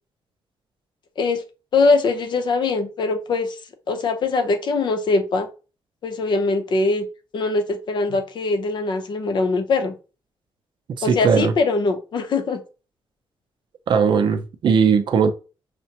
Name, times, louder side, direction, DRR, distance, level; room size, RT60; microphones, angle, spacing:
voice 1, 1.7-3.6 3.9-5.5 6.0-7.1 7.3-9.9 11.0-12.6, left 3 dB, 50° left, 0.6 m, -22 dB
voice 2, 11.0-11.5 13.9-15.3, right 6 dB, 50° right, 0.5 m, -18 dB
5.8 x 2.1 x 2.8 m
cardioid pair, 140°, 10 cm